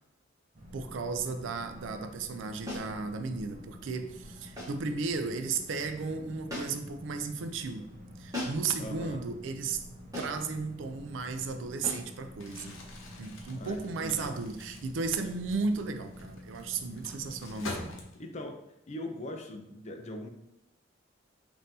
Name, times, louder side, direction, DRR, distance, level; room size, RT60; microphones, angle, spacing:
sound 1, 0.5-18.0, equal, 45° right, 0.7 m, -49 dB
voice 1, 0.7-7.9 8.2-9.8 10.2-12.8 13.2-18.0, right 4 dB, 70° right, 8 dB, 0.4 m, -34 dB
sound 2, 2.7-3.0 4.6-4.9 6.5-6.9 8.3-8.7 10.1-10.5 11.8-12.1, left 1 dB, 20° right, 1.1 m, -38 dB
voice 2, 8.8-9.2 13.5-14.3 17.5-17.7 18.2-20.3, left 1 dB, 35° left, 4 dB, 0.5 m, -41 dB
Crumpling crinkling, 12.3-18.5, left 2 dB, 80° left, 0.7 m, -46 dB
5.3 x 2.6 x 2.7 m, 0.86 s
head